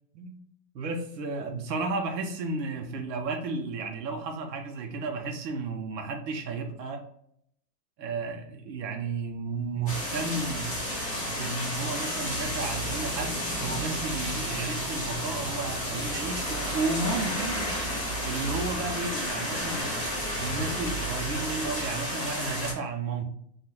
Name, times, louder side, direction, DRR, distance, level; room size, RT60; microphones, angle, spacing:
voice 1, 0.7-7.0 8.0-10.8 11.3-17.7 18.2-20.0 20.4-23.2, right 3 dB, 75° right, 3 dB, 0.7 m, -33 dB
sound 1, 9.9-22.7, equal, 10° left, 0.5 m, -31 dB
2.3 x 2.2 x 3.2 m, 0.71 s
hypercardioid pair, 175°, 49 cm